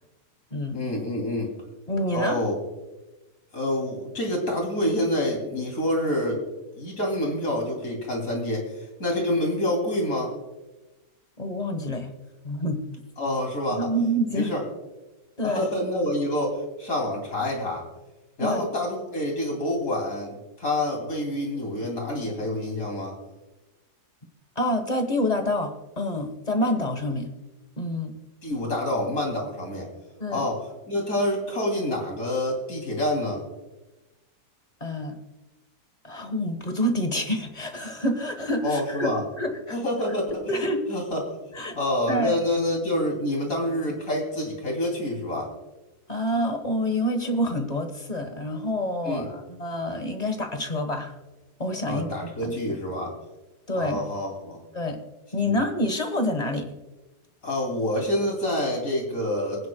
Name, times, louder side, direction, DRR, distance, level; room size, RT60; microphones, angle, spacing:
voice 1, 0.7-1.5 2.1-2.5 3.5-6.4 6.8-8.7 9.0-10.3 13.2-13.9 14.3-14.6 15.4-17.8 18.4-23.1 28.4-29.9 30.3-33.4 38.6-39.2 39.7-41.3 41.7-45.5 49.0-49.3 51.8-53.1 53.7-54.6 55.5-55.6 57.4-59.7, left 1 dB, 55° left, 1 dB, 3.3 m, -27 dB
voice 2, 1.9-2.4 11.4-12.1 12.4-12.9 13.7-14.5 15.4-15.7 18.4-18.6 24.5-27.3 27.8-28.1 30.2-30.4 34.8-35.2 36.0-39.1 39.4-39.8 40.5-40.8 41.5-41.7 42.1-42.4 46.1-51.1 51.6-52.5 53.7-54.0 54.7-55.0 55.3-56.7, left 1 dB, 25° left, 6 dB, 1.2 m, -27 dB
28.5 x 9.5 x 2.3 m, 1.1 s
omnidirectional pair, 1.8 m